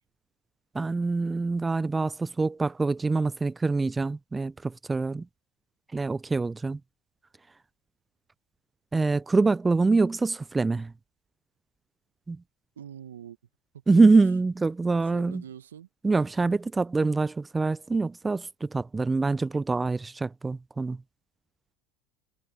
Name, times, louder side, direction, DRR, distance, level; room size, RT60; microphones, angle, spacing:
voice 1, 0.7-5.3 5.9-6.8 8.9-10.9 12.3-12.4 13.9-15.4 16.0-21.0, right 3 dB, 15° right, 0.6 m, -25 dB
voice 2, 12.7-13.4 13.7-14.3 15.0-15.9, right 9 dB, 80° right, 1.8 m, -44 dB
hypercardioid pair, 80°, 0 cm